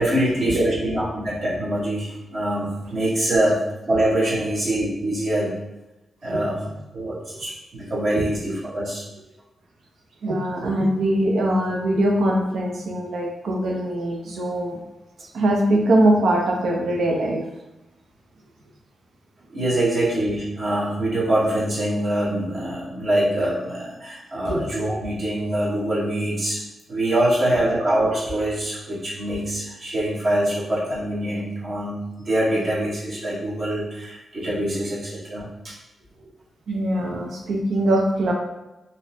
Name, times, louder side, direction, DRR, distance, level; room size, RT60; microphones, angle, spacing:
voice 1, 0.0-3.6 3.9-5.5 6.2-6.6 6.9-9.0 19.5-26.6 26.9-35.7, right 1 dB, 50° right, -7 dB, 1.2 m, -24 dB
voice 2, 10.2-14.8 15.3-17.4 24.5-24.9 27.6-27.7 36.7-38.3, right 1 dB, 85° right, 0 dB, 0.7 m, -22 dB
3.9 x 2.5 x 2.7 m, 0.99 s
wide cardioid pair, 145°, 0 cm